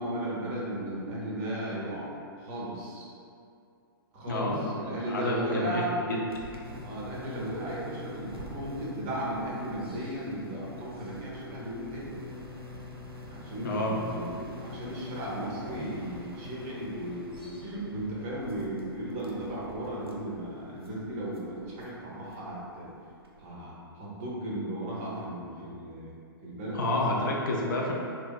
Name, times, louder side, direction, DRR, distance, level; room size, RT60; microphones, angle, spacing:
voice 1, 0.0-2.1 2.4-3.1 4.1-6.0 6.8-12.2 13.3-22.9 23.4-26.1 26.4-26.8, right 1 dB, 35° right, -5 dB, 0.6 m, -35 dB
voice 2, 4.2-5.8 6.1-6.2 13.6-14.4 26.7-27.9, left 1 dB, 55° left, -2 dB, 0.4 m, -29 dB
sound 1, 6.3-23.5, left 2 dB, 90° right, 0.4 m, -45 dB
2.6 x 2.2 x 2.2 m, 2.4 s
figure-of-eight pair, 110°, 12 cm